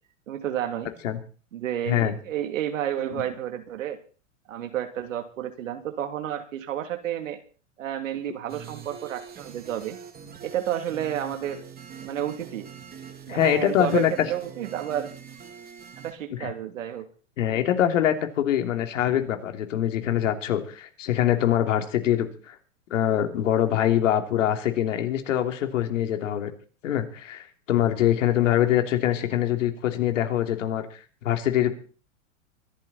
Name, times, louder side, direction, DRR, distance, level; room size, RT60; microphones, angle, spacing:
voice 1, 0.3-0.9 1.5-4.0 4.5-7.4 7.8-10.0 10.4-11.6 12.0-12.7 13.3-15.1 16.0-17.1, right 10 dB, 75° right, 6 dB, 3.2 m, -31 dB
voice 2, 1.9-2.2 13.3-14.1 16.4-16.5 17.4-22.5 22.9-26.5 26.8-30.9 31.2-31.7, left 11 dB, 70° left, 6 dB, 3.2 m, -24 dB
sound 1, 8.5-16.1, right 7 dB, 25° right, 2.8 m, -44 dB
24.0 x 11.5 x 4.3 m, 0.39 s
hypercardioid pair, 120°, 39 cm